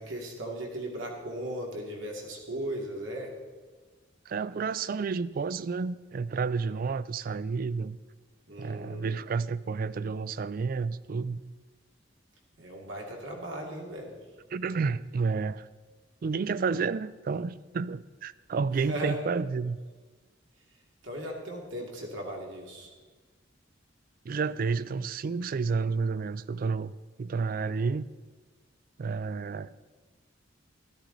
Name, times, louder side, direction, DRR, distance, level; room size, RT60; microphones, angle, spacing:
voice 1, 0.0-3.3 8.5-9.2 12.6-14.2 18.8-19.2 21.0-22.9, right 1 dB, 85° right, 0 dB, 2.4 m, -37 dB
voice 2, 4.3-8.0 8.6-11.4 14.5-15.7 16.2-19.8 24.2-26.9 27.2-28.1 29.0-29.7, right 5 dB, 50° right, 17 dB, 0.3 m, -30 dB
13.5 x 12.5 x 3.9 m, 1.4 s
head